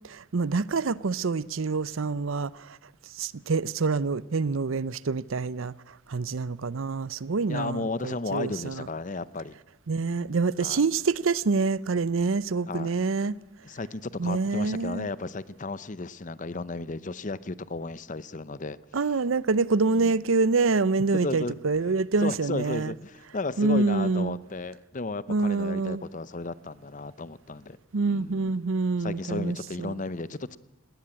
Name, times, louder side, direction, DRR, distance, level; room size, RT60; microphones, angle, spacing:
voice 1, 0.1-2.5 3.2-5.7 6.1-8.9 9.9-13.4 14.2-15.1 18.9-22.9 23.6-24.4 25.3-26.0 27.9-29.9, right 4 dB, 90° right, 0.6 m, -26 dB
voice 2, 7.5-9.5 10.6-10.8 12.7-12.9 13.6-18.8 19.9-20.2 21.1-21.6 22.2-27.8 28.1-28.6 29.0-30.6, left 3 dB, 40° left, 0.8 m, -34 dB
19.5 x 18.0 x 8.7 m
head